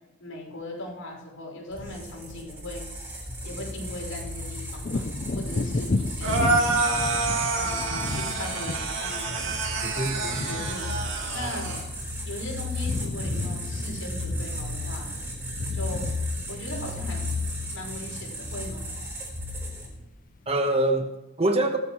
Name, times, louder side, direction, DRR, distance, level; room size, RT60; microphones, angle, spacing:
voice 1, 0.2-2.9 3.4-6.8 7.6-9.5 10.4-11.7 12.2-15.1 15.7-16.1 16.5-17.2 17.7-18.9, left 1 dB, 80° left, -1 dB, 5.8 m, -39 dB
sound 1, 1.7-20.1, left 1 dB, 10° right, 3.8 m, -34 dB
Wind / Thunder, 4.8-12.4 12.7-19.9 20.3-20.5, left 2 dB, 40° left, 0.5 m, -34 dB
sound 2, 6.2-11.8, right 3 dB, 65° right, 2.4 m, -28 dB
voice 2, 9.8-10.5 20.5-21.8, right 1 dB, 30° right, 6 dB, 1.1 m, -25 dB
18.0 x 13.5 x 3.1 m, 0.99 s
head